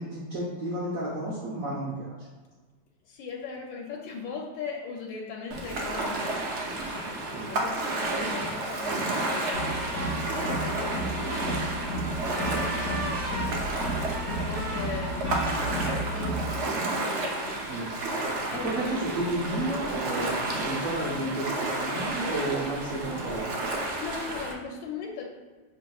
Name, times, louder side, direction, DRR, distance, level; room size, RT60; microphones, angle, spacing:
voice 1, 0.0-2.2 7.3-7.5 12.4-12.7 13.4-13.5 17.5-17.9 18.5-23.6, right 1 dB, 60° right, -6 dB, 1.1 m, -32 dB
voice 2, 3.0-12.4 12.7-13.0 14.0-19.2 24.0-25.2, left 4 dB, 85° left, -1 dB, 1.3 m, -40 dB
Ocean, 5.5-24.5, right 2 dB, 90° right, 0.6 m, -31 dB
sound 1, 9.5-16.6, right 1 dB, 25° left, 1.6 m, -32 dB
6.0 x 3.1 x 2.3 m, 1.4 s
omnidirectional pair, 2.0 m